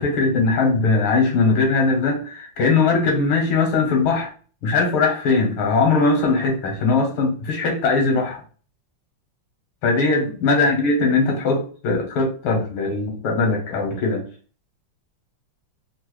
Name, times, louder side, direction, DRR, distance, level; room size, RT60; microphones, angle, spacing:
voice 1, 0.0-4.3 4.6-8.4 9.8-14.2, left 3 dB, 90° left, 2 dB, 1.9 m, -20 dB
4.1 x 2.2 x 3.0 m, 0.40 s
omnidirectional pair, 2.2 m